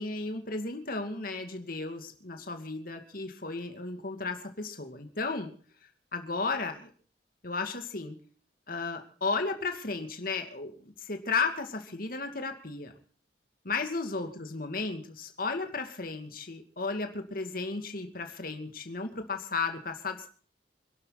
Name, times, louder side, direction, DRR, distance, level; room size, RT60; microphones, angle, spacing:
voice 1, 0.0-5.5 6.1-6.9 7.4-8.2 8.7-12.9 13.6-20.3, left 4 dB, 55° left, 6 dB, 2.5 m, -34 dB
26.5 x 11.5 x 4.1 m, 0.43 s
head